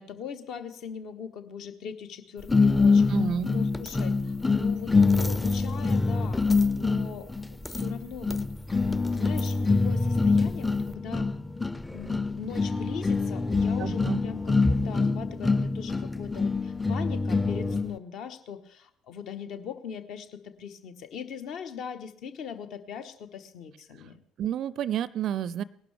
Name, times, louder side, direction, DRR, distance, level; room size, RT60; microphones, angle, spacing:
voice 1, 0.0-3.1 3.5-6.4 6.7-8.4 8.8-11.3 11.9-24.2, left 7 dB, 55° left, 9 dB, 1.2 m, -40 dB
sound 1, 2.5-17.9, left 4 dB, 15° left, 0.6 m, -25 dB
voice 2, 3.1-3.5 13.8-14.2 24.4-25.6, right 9 dB, 50° right, 21 dB, 0.4 m, -30 dB
19.5 x 11.5 x 3.4 m, 0.64 s
figure-of-eight pair, 55°, 0 cm